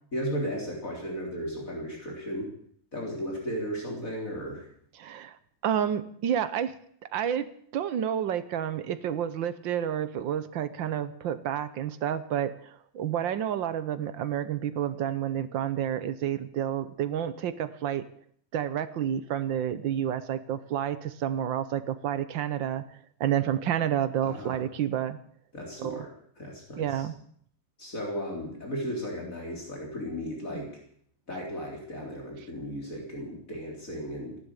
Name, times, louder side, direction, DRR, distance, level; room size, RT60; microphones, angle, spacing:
voice 1, 0.1-2.5 2.9-4.7 24.2-24.6 25.5-26.1 26.4-27.1 27.8-30.7 31.3-34.4, equal, 40° left, -1 dB, 4.0 m, -35 dB
voice 2, 5.0-5.4 5.6-6.7 7.1-18.0 18.5-22.8 23.2-25.2 25.8-26.0 26.8-27.1, right 9 dB, 70° right, 13 dB, 1.5 m, -30 dB
15.0 x 11.0 x 8.2 m, 0.62 s
omnidirectional pair, 2.3 m